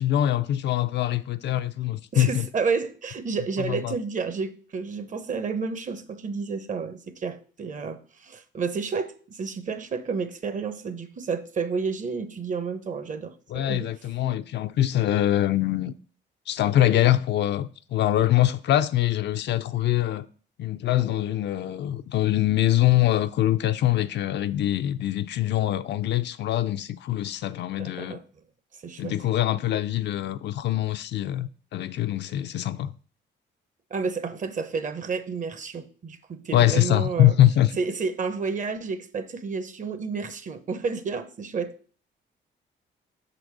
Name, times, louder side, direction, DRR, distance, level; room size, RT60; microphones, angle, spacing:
voice 1, 0.0-2.5 3.6-3.9 13.5-15.9 16.5-20.3 20.6-28.2 29.0-32.9 36.5-37.7, left 13 dB, 60° left, 0.4 m, -23 dB
voice 2, 2.1-13.9 27.8-28.2 28.8-29.2 33.9-37.3 37.8-41.9, right 5 dB, 40° right, 0.7 m, -31 dB
6.0 x 3.9 x 4.7 m
cardioid pair, 90°, 20 cm